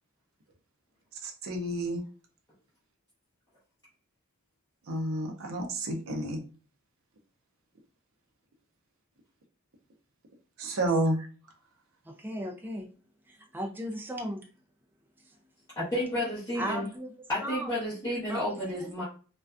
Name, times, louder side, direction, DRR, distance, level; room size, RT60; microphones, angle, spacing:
voice 1, 1.2-2.0 4.9-6.4 10.6-11.3, right 1 dB, 75° right, 0.6 m, -30 dB
voice 2, 12.0-12.9 13.3-14.5 16.6-17.1 17.4-17.7 18.3-18.9, equal, 10° right, 0.3 m, -36 dB
voice 3, 15.8-16.8 17.3-19.0, equal, 15° left, 0.8 m, -31 dB
2.4 x 2.2 x 2.3 m
head